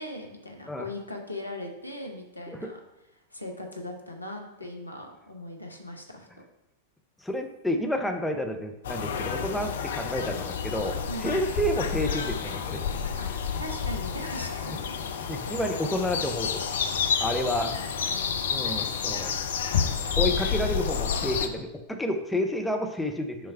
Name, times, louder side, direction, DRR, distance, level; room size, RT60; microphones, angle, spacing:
voice 1, 0.0-2.8 3.3-6.3 11.1-11.4 13.2-13.3 13.6-15.0 15.4-15.5 17.0-17.4 17.6-18.5 19.9-20.0, left 1 dB, 85° left, 2 dB, 0.9 m, -39 dB
voice 2, 7.2-12.8 15.3-16.7 17.2-17.9 18.5-19.4 20.2-23.5, left 1 dB, 5° left, 4 dB, 0.6 m, -30 dB
sound 1, 8.8-21.5, left 6 dB, 60° left, 0.5 m, -30 dB
6.3 x 3.4 x 5.6 m, 0.91 s
figure-of-eight pair, 90°, 0 cm